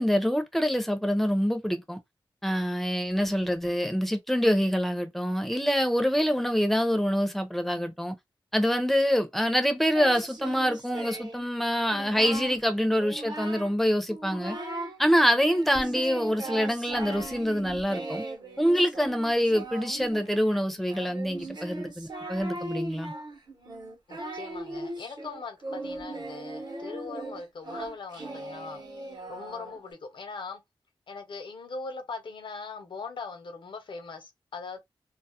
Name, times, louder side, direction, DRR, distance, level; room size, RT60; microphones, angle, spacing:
voice 1, 0.0-2.0 2.4-8.1 8.5-14.6 15.0-18.2 18.6-23.1, equal, ahead, 0.5 m, -25 dB
Singing, 9.9-11.4 11.8-12.6 13.0-13.8 14.1-15.0 15.4-29.9, right 2 dB, 55° right, 0.8 m, -38 dB
voice 2, 24.1-28.8 29.3-30.6 31.1-34.8, left 4 dB, 65° left, 0.6 m, -40 dB
2.3 x 2.0 x 2.7 m
wide cardioid pair, 80°, 9 cm